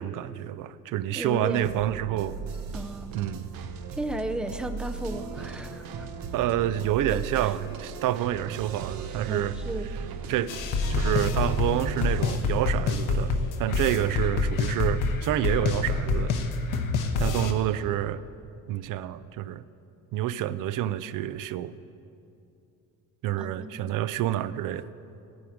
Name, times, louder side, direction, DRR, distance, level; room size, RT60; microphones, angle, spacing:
voice 1, 0.0-2.4 3.1-3.5 6.3-9.6 10.3-10.5 10.9-16.3 17.2-18.2 18.7-19.6 20.1-21.7 23.2-24.9, right 12 dB, 70° right, 16 dB, 0.5 m, -28 dB
voice 2, 1.1-2.0 2.7-3.1 3.9-6.1 7.1-7.5 9.3-10.1 13.9-14.1 23.4-24.0, right 1 dB, 5° right, 7 dB, 0.4 m, -35 dB
sound 1, 1.6-12.4, right 5 dB, 90° right, 1.0 m, -36 dB
sound 2, 10.5-17.5, left 4 dB, 65° left, 1.0 m, -26 dB
15.0 x 9.8 x 5.0 m, 2.6 s
cardioid pair, 160°, 34 cm